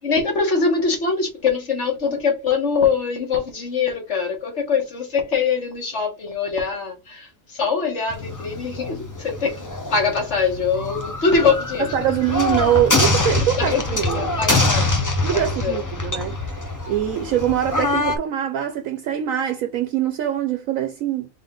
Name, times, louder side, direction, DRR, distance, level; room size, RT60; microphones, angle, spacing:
voice 1, 0.0-11.9 13.4-15.8, left 5 dB, 50° left, 1.7 m, -23 dB
ceremonial cannon fire, 8.1-18.2, left 2 dB, 25° left, 0.4 m, -24 dB
voice 2, 11.9-14.4 15.2-16.6 16.9-21.3, right 11 dB, 70° right, 0.9 m, -23 dB
4.0 x 3.7 x 3.6 m
omnidirectional pair, 1.6 m